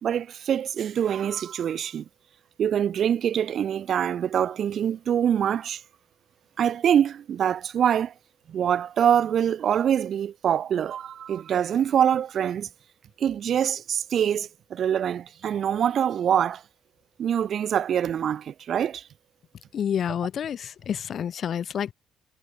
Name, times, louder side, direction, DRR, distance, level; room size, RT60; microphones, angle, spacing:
voice 1, 0.0-2.0 2.6-5.8 6.6-8.1 8.5-12.7 13.2-16.6 17.2-19.0, right 9 dB, 55° right, 1.0 m, -24 dB
voice 2, 19.7-21.9, left 8 dB, 50° left, 3.6 m, -29 dB
cardioid pair, 115°, 0 cm